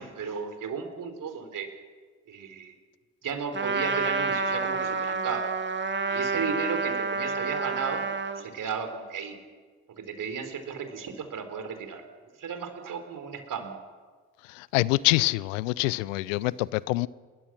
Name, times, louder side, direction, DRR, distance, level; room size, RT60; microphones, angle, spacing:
voice 1, 0.0-1.7 2.3-2.7 3.2-5.5 6.1-8.1 8.4-9.4 10.0-12.0 12.4-13.7 16.4-16.5, right 6 dB, 55° right, 7 dB, 4.3 m, -34 dB
Trumpet, 3.5-8.5, right 4 dB, 30° right, 2.2 m, -29 dB
voice 2, 14.6-17.1, left 21 dB, 75° left, 22 dB, 0.6 m, -25 dB
29.0 x 21.0 x 6.2 m, 1.5 s
figure-of-eight pair, 40°, 39 cm